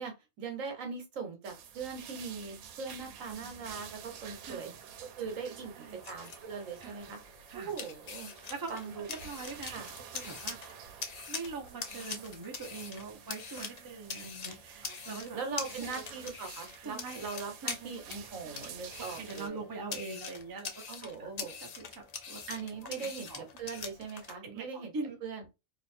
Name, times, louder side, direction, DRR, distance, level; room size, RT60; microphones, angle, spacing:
voice 1, 0.0-4.7 5.2-7.2 7.5-8.3 8.7-9.1 9.7-9.9 14.8-19.6 20.9-21.5 22.5-24.9 25.2-25.4, right 5 dB, 70° right, 5 dB, 1.3 m, -41 dB
sound 1, 1.4-19.5, right 8 dB, 85° right, 1.1 m, -50 dB
voice 2, 5.5-6.0 6.8-7.0 7.5-7.7 8.5-8.8 9.1-9.8 10.1-10.8 11.3-15.4 15.8-16.0 16.8-17.2 17.6-17.9 18.4-18.5 19.2-21.1 21.6-22.4 23.0-23.4 24.4-25.2, right 4 dB, 25° right, 3 dB, 0.5 m, -43 dB
sound 2, 5.8-24.4, left 5 dB, 75° left, 0.3 m, -44 dB
2.8 x 2.5 x 4.3 m, 0.26 s
omnidirectional pair, 1.5 m